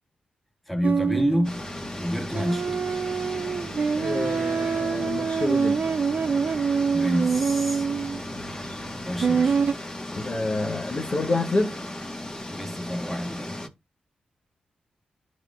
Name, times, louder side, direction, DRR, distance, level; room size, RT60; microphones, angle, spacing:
voice 1, 0.7-1.7 2.0-2.8 6.9-7.9 9.0-9.6 12.5-13.6, equal, ahead, 1.5 m, -28 dB
sound 1, 0.8-9.7, right 5 dB, 60° right, 0.4 m, -25 dB
sound 2, 1.4-13.7, left 1 dB, 25° left, 1.7 m, -36 dB
voice 2, 4.0-5.9 8.3-8.8 10.1-11.9, left 2 dB, 45° left, 1.3 m, -28 dB
12.0 x 4.2 x 2.5 m
supercardioid pair, 45°, 3 cm